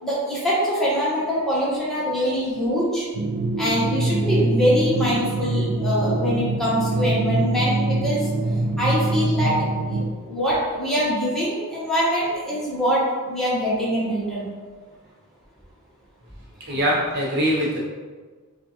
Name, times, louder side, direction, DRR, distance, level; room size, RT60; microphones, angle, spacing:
voice 1, 0.0-3.1 3.6-9.6 9.9-14.5, equal, ahead, -9 dB, 1.2 m, -24 dB
sound 1, 3.1-10.1, right 2 dB, 75° right, 0.4 m, -24 dB
voice 2, 16.6-17.8, equal, 50° right, -5 dB, 0.8 m, -23 dB
6.0 x 2.4 x 3.0 m, 1.4 s
head